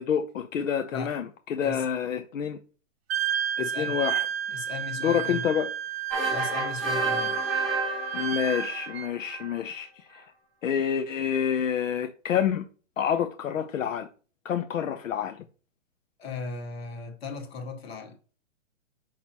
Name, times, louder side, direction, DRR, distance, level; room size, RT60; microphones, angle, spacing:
voice 1, 0.0-2.6 3.6-4.3 5.0-5.7 8.1-10.3 10.6-12.6 13.0-14.1 14.4-15.4, left 8 dB, 80° left, 0.8 m, -28 dB
Wind instrument woodwind instrument, 3.1-9.1, right 9 dB, 55° right, 0.4 m, -31 dB
voice 2, 3.6-4.0 4.5-5.5 6.3-7.4 16.2-18.2, left 4 dB, 50° left, 1.7 m, -37 dB
sound 1, 6.1-9.6, right 3 dB, ahead, 1.7 m, -30 dB
6.3 x 5.9 x 2.9 m
hypercardioid pair, 170°, 38 cm